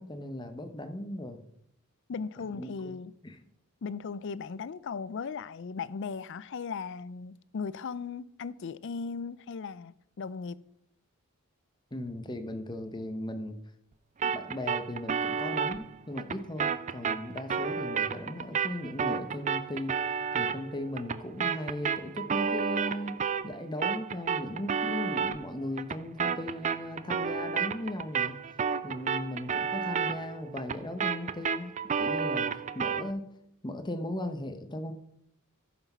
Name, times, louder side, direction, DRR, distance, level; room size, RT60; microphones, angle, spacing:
voice 1, 0.0-1.4 2.4-2.9 3.2-3.4 11.9-13.6 14.2-20.0 20.3-28.4 28.8-31.7 32.0-32.5 32.7-33.3 33.6-34.9, left 1 dB, 20° left, 0.8 m, -37 dB
voice 2, 2.1-3.1 3.8-10.6, left 5 dB, 55° left, 0.4 m, -37 dB
sound 1, 14.2-23.6 23.8-33.1, right 6 dB, 35° right, 0.4 m, -32 dB
11.5 x 6.0 x 5.5 m
head